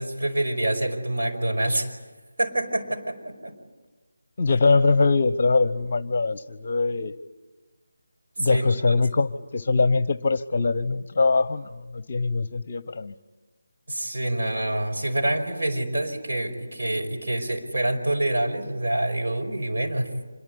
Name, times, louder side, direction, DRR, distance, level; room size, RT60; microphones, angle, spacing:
voice 1, 0.0-1.9 2.4-3.5 8.4-8.7 13.9-20.1, right 1 dB, 50° right, 2 dB, 5.3 m, -26 dB
voice 2, 4.4-7.1 8.4-13.1, left 3 dB, 40° left, 18 dB, 0.8 m, -22 dB
26.5 x 22.5 x 10.0 m, 1.2 s
figure-of-eight pair, 155°, 0 cm